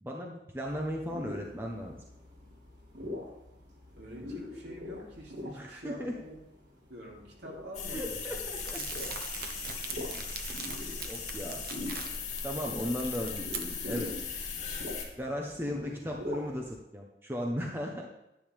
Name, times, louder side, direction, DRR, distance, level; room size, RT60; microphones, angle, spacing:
voice 1, 0.0-2.0 5.5-6.1 7.9-8.8 10.0-10.3 11.1-11.6 12.4-14.1 15.2-18.1, equal, 10° right, 0 dB, 1.0 m, -36 dB
sound 1, 0.7-16.8, left 1 dB, 85° right, 4.4 m, -44 dB
voice 2, 4.0-6.3 6.9-8.4 8.8-9.0 12.5-13.0, equal, 70° right, -3 dB, 3.0 m, -46 dB
sound 2, 7.7-15.1, left 5 dB, 40° left, 2.8 m, -38 dB
Crumpling crinkling, 8.6-12.4 12.8-14.1, right 6 dB, 55° right, 1.0 m, -42 dB
10.5 x 10.5 x 3.5 m, 0.89 s
head